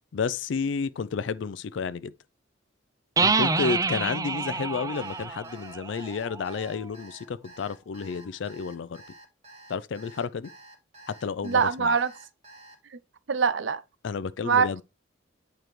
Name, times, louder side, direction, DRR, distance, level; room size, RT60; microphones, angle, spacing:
voice 1, 0.1-2.1 3.2-9.0 9.7-10.5 11.1-12.0 14.0-14.8, left 5 dB, 70° left, 0.4 m, -31 dB
sound 1, 3.2-6.8, right 4 dB, 15° right, 0.4 m, -28 dB
Alarm, 4.9-12.8, right 2 dB, 35° right, 1.7 m, -50 dB
voice 2, 11.4-12.1 13.3-13.8 14.4-14.8, right 6 dB, 70° right, 0.6 m, -23 dB
8.9 x 4.5 x 3.2 m
head